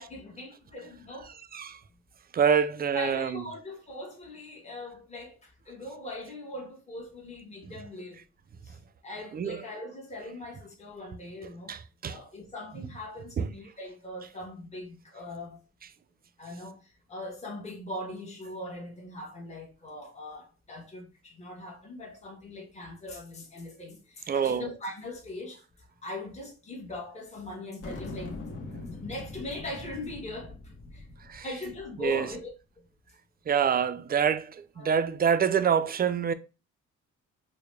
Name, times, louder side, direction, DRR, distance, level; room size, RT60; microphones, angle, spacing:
voice 1, 0.0-1.4 2.5-2.6 2.9-8.2 8.6-8.8 9.0-11.7 12.1-15.6 16.4-25.6 26.0-28.4 28.9-31.1 31.4-32.9 34.8-35.0, left 2 dB, 20° left, 1.3 m, -41 dB
voice 2, 2.3-3.4 9.3-9.6 11.7-12.2 13.4-13.5 24.3-24.7 31.3-31.5 32.0-32.3 33.5-36.3, right 7 dB, 30° right, 0.4 m, -26 dB
sound 1, 27.8-32.5, left 2 dB, 50° left, 1.1 m, -42 dB
4.6 x 2.2 x 3.3 m
cardioid pair, 90°, 30 cm